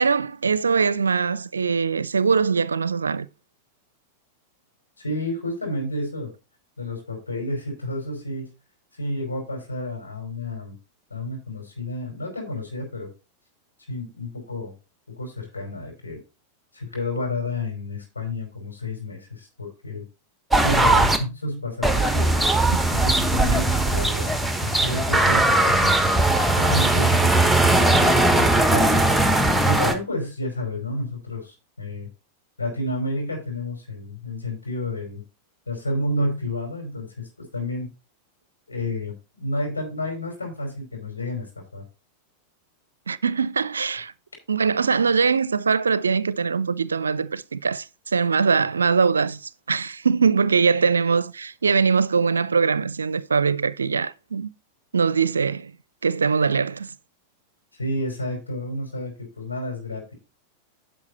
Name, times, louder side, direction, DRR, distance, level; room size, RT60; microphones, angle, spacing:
voice 1, 0.0-3.3 43.1-44.1 44.5-54.5 54.9-55.7 56.0-56.9, right 5 dB, 75° right, 0.5 m, -22 dB
voice 2, 5.0-6.3 6.8-8.4 8.9-10.8 11.1-13.1 13.9-14.7 15.2-16.2 16.7-20.0 20.6-22.3 22.9-26.0 26.6-29.0 29.7-32.1 32.6-35.2 35.7-37.9 38.7-41.5 41.7-41.8 57.7-60.1, left 1 dB, 80° left, 5.0 m, -30 dB
sound 1, 20.5-21.2 21.8-29.9, right 2 dB, 5° right, 1.3 m, -19 dB
10.5 x 6.1 x 4.1 m
figure-of-eight pair, 90°, 0 cm